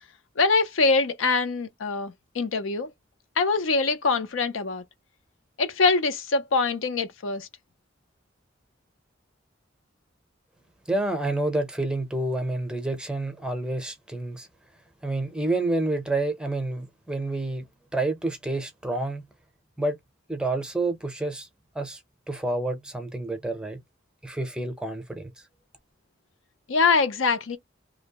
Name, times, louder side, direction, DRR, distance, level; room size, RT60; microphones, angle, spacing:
voice 1, 0.4-2.9 3.4-4.8 5.6-7.5 26.7-27.6, left 4 dB, 85° left, 0.6 m, -24 dB
voice 2, 10.9-14.5 15.0-17.6 17.9-19.2 19.8-20.0 20.3-21.5 21.7-22.0 22.3-23.8 24.2-25.3, right 2 dB, 5° right, 0.6 m, -28 dB
2.7 x 2.0 x 2.8 m
head